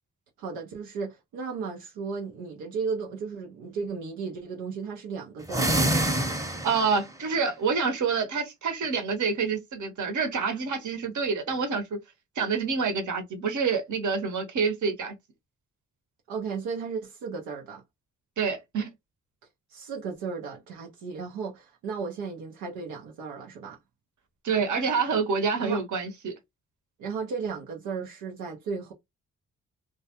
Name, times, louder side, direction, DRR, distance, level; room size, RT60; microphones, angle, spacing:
voice 1, 0.4-6.1 16.3-17.8 19.7-23.8 25.6-25.8 27.0-28.9, right 5 dB, 85° right, 0.6 m, -35 dB
sound 1, 5.4-7.1, right 1 dB, 10° right, 0.8 m, -26 dB
voice 2, 6.6-11.8 12.4-15.1 18.4-18.9 24.4-26.3, right 5 dB, 55° right, 0.9 m, -27 dB
2.2 x 2.2 x 2.8 m
supercardioid pair, 45°, 35 cm